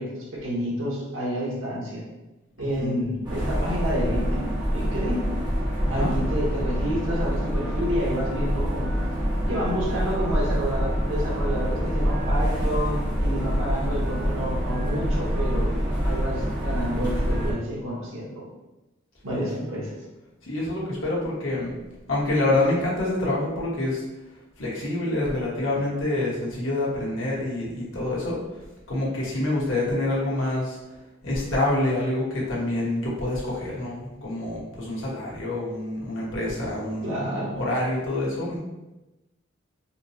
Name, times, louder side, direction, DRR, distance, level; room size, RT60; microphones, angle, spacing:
voice 1, 0.0-2.0 2.6-5.3 5.9-9.0 9.5-15.7 16.0-18.5 19.2-19.9 37.0-37.6, equal, 80° right, -4 dB, 1.1 m, -29 dB
voice 2, 2.6-2.9 5.8-6.1 19.2-19.6 20.4-21.7 22.1-24.0 24.6-28.4 28.9-30.8 31.2-37.1 37.6-38.6, left 2 dB, 75° left, -6 dB, 1.1 m, -27 dB
sound 1, 3.2-17.5, equal, 25° right, 0.8 m, -26 dB
Telephone, 7.5-7.8 8.2-8.4 8.8-9.1 9.5-9.7 10.1-10.4 10.8-11.0 11.4-11.7 12.1-12.3 12.7-13.0 13.4-13.6 14.0-14.3 14.7-14.9 15.3-15.6 16.0-16.2 16.7-16.9 17.3-17.5, right 1 dB, ahead, 0.5 m, -45 dB
4.3 x 2.0 x 2.7 m, 1.0 s
head